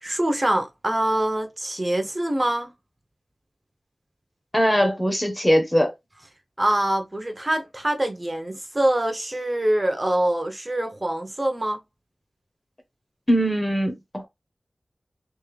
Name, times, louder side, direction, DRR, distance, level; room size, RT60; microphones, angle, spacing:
voice 1, 0.0-2.7 6.6-11.8, right 1 dB, 30° right, 0.8 m, -24 dB
voice 2, 4.5-5.9 13.3-14.3, equal, 15° left, 1.1 m, -21 dB
3.6 x 2.5 x 3.3 m
wide cardioid pair, 70°, 0 cm